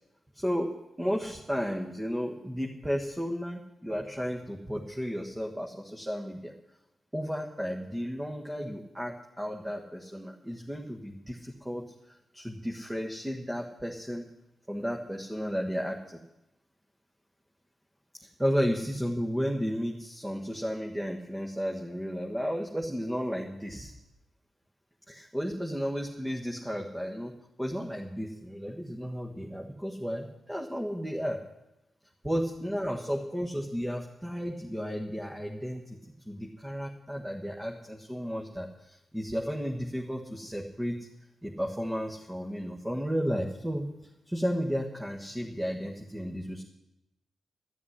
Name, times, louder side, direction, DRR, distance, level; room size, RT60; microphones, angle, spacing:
voice 1, 0.3-6.5 7.1-14.3 14.7-16.2 18.2-23.9 25.1-31.4 32.2-36.0 36.2-41.1 41.4-43.9 44.3-46.6, equal, 10° right, 0 dB, 1.5 m, -33 dB
13.0 x 7.3 x 10.0 m, 0.90 s
cardioid pair, 75°, 0 cm